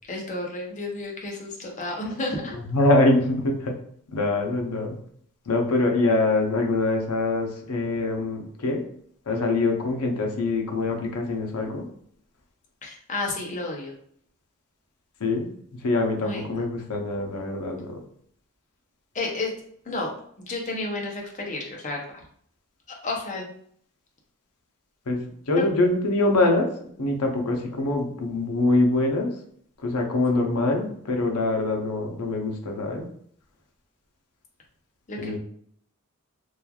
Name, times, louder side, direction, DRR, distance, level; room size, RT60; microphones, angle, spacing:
voice 1, 0.1-2.5 12.8-13.9 16.2-16.7 19.1-19.5 19.8-22.2 23.0-23.6 25.6-25.7 35.1-35.4, left 2 dB, 35° left, 0 dB, 0.6 m, -31 dB
voice 2, 2.7-3.7 4.1-5.0 5.5-8.8 9.3-11.9 15.2-15.5 15.8-18.0 25.1-25.2 25.5-26.7 27.0-29.3 29.8-33.0 35.2-35.4, left 2 dB, 80° left, 2 dB, 0.6 m, -24 dB
3.1 x 2.3 x 2.3 m, 0.63 s
head